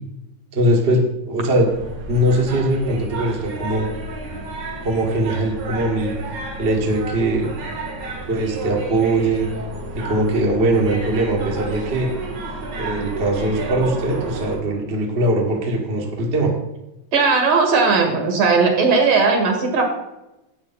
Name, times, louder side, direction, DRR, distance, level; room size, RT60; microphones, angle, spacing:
voice 1, 0.5-1.7 2.1-3.9 4.8-6.2 6.6-7.5 8.3-9.5 9.9-12.1 12.7-16.5, right 1 dB, 25° right, -1 dB, 1.5 m, -21 dB
sound 1, 1.7-14.6, right 3 dB, 85° right, 3.5 m, -31 dB
voice 2, 17.1-19.8, right 4 dB, 60° right, 3 dB, 3.1 m, -17 dB
12.0 x 8.6 x 4.2 m, 0.93 s
omnidirectional pair, 3.3 m